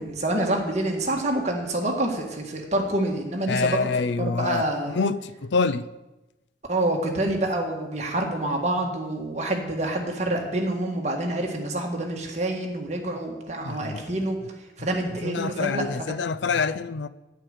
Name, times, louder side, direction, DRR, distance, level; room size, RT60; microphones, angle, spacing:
voice 1, 0.0-3.9 4.2-5.0 6.7-14.4 14.8-16.2, right 1 dB, 40° right, 1.8 m, -27 dB
voice 2, 3.5-5.8 13.6-14.0 15.2-17.1, left 4 dB, 80° left, 0.5 m, -26 dB
9.2 x 9.0 x 6.6 m
head